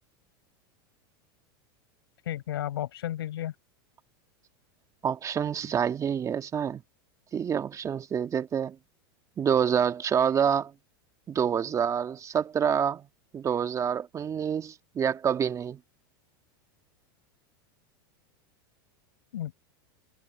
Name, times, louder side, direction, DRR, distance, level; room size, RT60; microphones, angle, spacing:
voice 1, 2.3-3.5 19.3-19.5, left 12 dB, 85° left, 6.2 m, -33 dB
voice 2, 5.0-6.8 7.3-8.7 9.4-10.7 11.3-13.1 13.3-15.8, right 8 dB, 25° right, 1.8 m, -27 dB
supercardioid pair, 120°, 12 cm